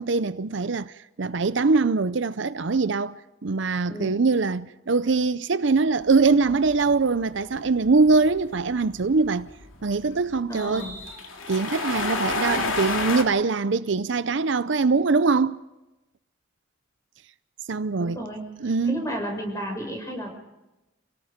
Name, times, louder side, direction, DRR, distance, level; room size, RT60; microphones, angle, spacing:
voice 1, 0.0-9.5 9.8-10.9 11.5-15.6 17.7-18.2 18.6-19.0, right 4 dB, 65° right, 0.6 m, -23 dB
sound 1, 6.0-13.2, left 3 dB, 85° left, 2.7 m, -31 dB
voice 2, 10.5-10.9 18.0-18.5 18.8-20.3, equal, 15° left, 6.0 m, -32 dB
28.5 x 18.0 x 5.1 m
head